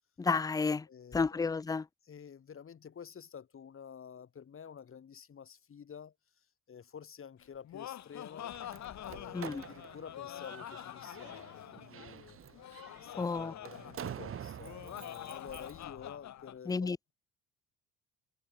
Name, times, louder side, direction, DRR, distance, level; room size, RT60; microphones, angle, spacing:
voice 1, 0.2-0.9 1.1-1.9 9.3-9.6 13.2-13.5 16.7-17.0, left 4 dB, 10° left, 0.4 m, -31 dB
voice 2, 0.9-1.3 2.1-6.1 6.7-8.5 9.0-12.4 12.9-17.1, left 7 dB, 40° left, 2.4 m, -50 dB
Laughter, 7.4-16.6, left 12 dB, 60° left, 1.7 m, -46 dB
Slam, 8.4-15.8, right 9 dB, 45° right, 1.0 m, -48 dB
supercardioid pair, 80°, 32 cm